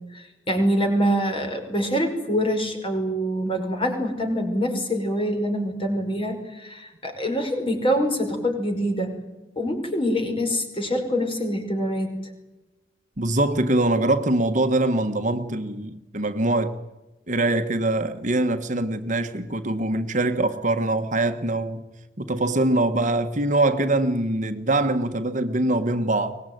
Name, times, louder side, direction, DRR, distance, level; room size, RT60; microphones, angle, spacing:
voice 1, 0.1-9.1 9.6-12.1, equal, 30° left, 5.4 m, -25 dB
voice 2, 13.2-16.7 17.3-21.9 22.2-26.4, right 2 dB, 45° right, 1.5 m, -23 dB
24.0 x 19.5 x 9.4 m
head